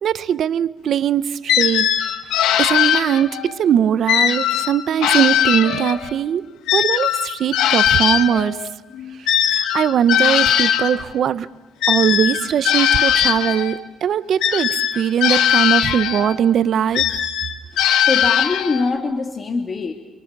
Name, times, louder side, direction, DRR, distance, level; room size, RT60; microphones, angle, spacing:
voice 1, 0.0-2.0 2.6-6.5 6.7-8.6 9.5-11.5 11.9-17.1, right 9 dB, 65° right, 1.0 m, -20 dB
sound 1, 1.5-3.5 4.1-6.2 6.7-11.0 11.8-13.8 14.4-16.4 16.9-18.9, left 10 dB, 90° left, 2.0 m, -19 dB
voice 2, 18.1-19.9, left 4 dB, 35° left, 2.7 m, -23 dB
29.0 x 27.5 x 6.9 m
cardioid pair, 90°, 0 cm